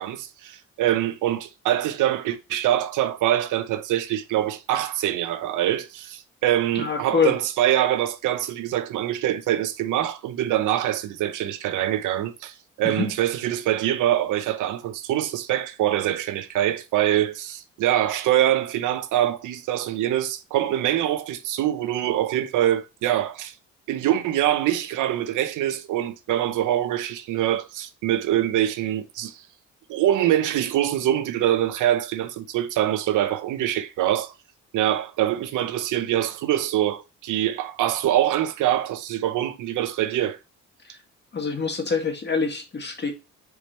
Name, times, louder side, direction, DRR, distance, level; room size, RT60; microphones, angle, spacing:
voice 1, 0.0-23.5 23.9-29.4 29.9-34.3 34.7-40.4, right 12 dB, 85° right, 0.8 m, -24 dB
voice 2, 6.8-7.4 12.8-13.1 40.8-41.0 41.3-43.1, left 5 dB, 35° left, 2.0 m, -25 dB
5.0 x 4.7 x 4.4 m
cardioid pair, 90°, 30 cm